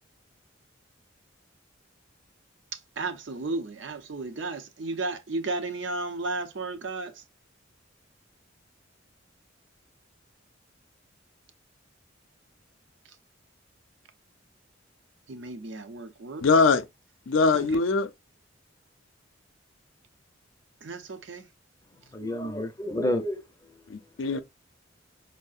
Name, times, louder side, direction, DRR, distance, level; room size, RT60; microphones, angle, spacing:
voice 1, 3.0-7.1 15.3-16.4 17.5-17.7 20.8-21.4, right 3 dB, 65° right, 0.6 m, -33 dB
voice 2, 16.4-16.8 17.3-18.1 23.9-24.4, left 4 dB, 85° left, 0.5 m, -22 dB
voice 3, 22.1-23.8 24.3-24.4, left 1 dB, 15° left, 0.5 m, -30 dB
5.4 x 2.0 x 2.4 m
head